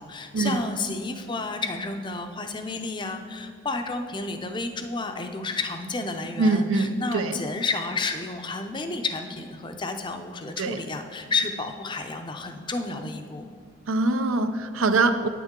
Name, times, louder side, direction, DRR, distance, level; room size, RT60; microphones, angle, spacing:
voice 1, 0.0-13.5, left 3 dB, 20° left, 0.5 m, -31 dB
voice 2, 6.4-7.4 10.6-10.8 13.9-15.3, right 3 dB, 85° right, 0.6 m, -23 dB
9.2 x 9.2 x 3.7 m
head